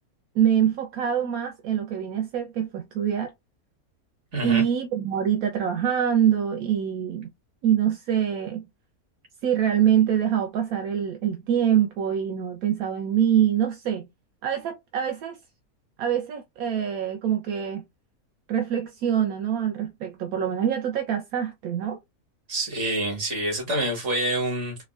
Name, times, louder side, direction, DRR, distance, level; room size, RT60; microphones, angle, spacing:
voice 1, 0.3-3.3 4.4-7.3 7.6-8.6 9.4-14.1 14.4-15.4 16.0-17.9 18.5-22.0, right 9 dB, 75° right, 1.1 m, -24 dB
voice 2, 4.3-4.6 22.5-24.8, right 1 dB, 55° right, 1.8 m, -27 dB
4.5 x 2.2 x 2.4 m
omnidirectional pair, 1.6 m